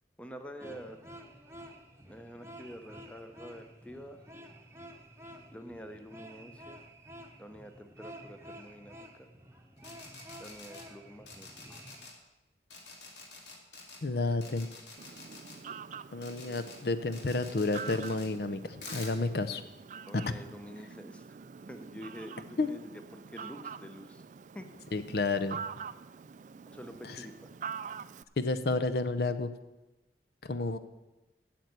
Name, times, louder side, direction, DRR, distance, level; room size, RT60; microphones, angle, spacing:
voice 1, 0.2-1.0 2.1-4.2 5.5-6.8 7.4-9.3 10.4-11.9 14.1-14.4 20.0-21.3 21.7-24.2 24.5-24.7 26.7-27.5, equal, 5° left, 8 dB, 0.7 m, -47 dB
sound 1, 0.6-12.1, equal, 15° right, 1.0 m, -51 dB
sound 2, 9.8-10.8 11.3-12.1 12.7-14.0 14.4-15.6 16.2-16.8 17.1-18.3 18.8-19.1, left 3 dB, 80° left, 2.1 m, -47 dB
voice 2, 14.0-14.7 16.1-19.6 20.3-20.4 22.6-22.7 24.9-25.6 28.4-29.5 30.4-30.8, left 3 dB, 60° left, 11 dB, 0.6 m, -31 dB
Fowl, 15.0-28.2, right 6 dB, 45° right, 0.3 m, -45 dB
8.9 x 7.6 x 8.1 m, 1.0 s
head